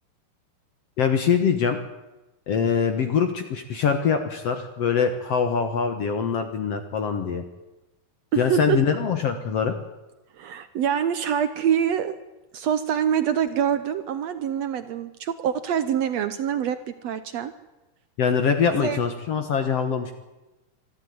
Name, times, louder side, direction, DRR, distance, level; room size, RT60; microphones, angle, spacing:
voice 1, 1.0-1.8 2.5-7.4 8.4-9.7 18.2-20.1, left 6 dB, 55° left, 7 dB, 1.9 m, -23 dB
voice 2, 8.3-8.8 10.4-12.1 12.5-16.8 17.0-17.5 18.8-19.0, right 9 dB, 70° right, 11 dB, 1.6 m, -25 dB
25.0 x 14.0 x 9.4 m, 1.1 s
omnidirectional pair, 4.0 m